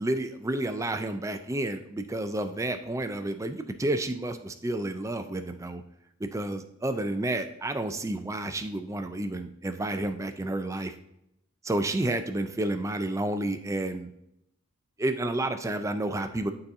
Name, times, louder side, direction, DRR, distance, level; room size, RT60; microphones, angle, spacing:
voice 1, 0.0-5.8 6.2-10.9 11.6-14.1 15.0-16.5, right 1 dB, 15° right, 8 dB, 0.4 m, -30 dB
11.0 x 4.1 x 2.6 m, 0.78 s
head